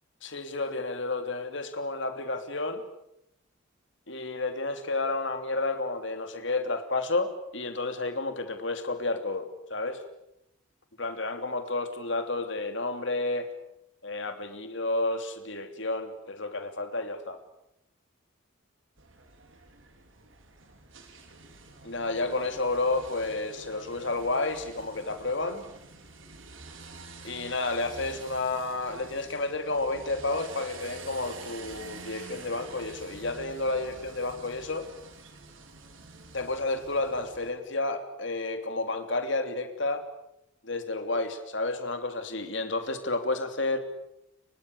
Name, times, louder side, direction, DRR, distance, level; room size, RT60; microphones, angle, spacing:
voice 1, 0.2-2.8 4.1-10.0 11.0-13.5 14.0-17.4 21.8-25.6 27.2-34.9 36.3-40.0 40.6-43.8, left 2 dB, 60° left, 7 dB, 3.1 m, -31 dB
sound 1, 19.0-37.5, right 3 dB, 70° right, 4.6 m, -48 dB
30.0 x 24.5 x 6.8 m, 0.81 s
head